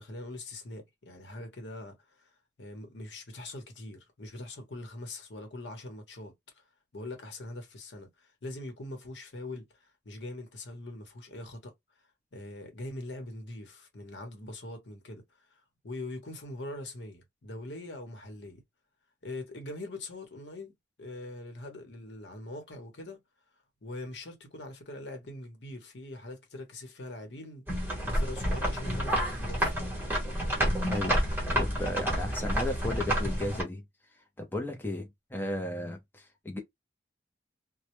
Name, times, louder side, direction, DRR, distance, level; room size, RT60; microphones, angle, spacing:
voice 1, 0.0-2.3 2.6-6.6 6.9-11.7 12.3-15.2 15.5-18.6 19.2-20.7 21.0-23.2 23.8-29.7, left 2 dB, 80° left, 0.9 m, -42 dB
sound 1, 27.7-33.6, equal, 10° right, 0.9 m, -29 dB
voice 2, 30.9-33.8 34.4-36.6, left 1 dB, 10° left, 0.5 m, -35 dB
2.1 x 2.1 x 2.9 m
head